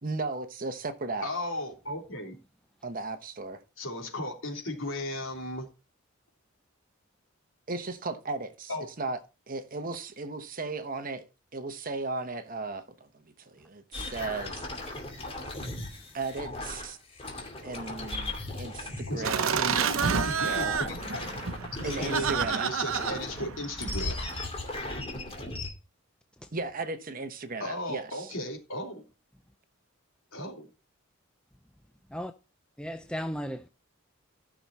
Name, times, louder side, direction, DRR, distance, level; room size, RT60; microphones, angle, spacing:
voice 1, 0.0-1.3 2.8-3.6 7.7-9.2 9.5-11.2 11.5-14.7 16.1-17.0 17.6-20.0 20.4-20.7 21.8-22.8 26.5-28.3, right 3 dB, 40° right, 1.1 m, -36 dB
voice 2, 1.2-2.4 3.8-5.7 8.7-8.8 19.1-21.4 21.8-24.2 27.6-29.0 30.3-30.7, left 1 dB, 65° left, 3.4 m, -36 dB
sound 1, 13.9-19.2 19.5-22.5 22.9-25.7, left 2 dB, 30° left, 2.6 m, -37 dB
Laughter, 19.2-24.4, right 6 dB, 80° right, 0.9 m, -30 dB
voice 3, 32.8-33.7, equal, 5° left, 0.5 m, -35 dB
14.0 x 6.2 x 4.2 m
head